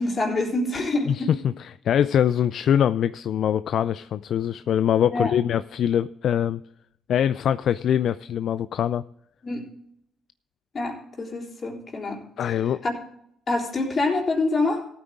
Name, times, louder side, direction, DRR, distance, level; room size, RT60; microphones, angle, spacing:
voice 1, 0.0-1.5 5.1-5.3 9.4-9.6 10.7-12.2 12.8-12.9 13.5-14.8, left 2 dB, 40° left, 1 dB, 3.6 m, -26 dB
voice 2, 1.6-6.6 7.1-9.0 12.4-12.8, left 9 dB, 65° left, 15 dB, 0.3 m, -23 dB
15.0 x 8.9 x 3.7 m, 0.72 s
supercardioid pair, 75°, 0 cm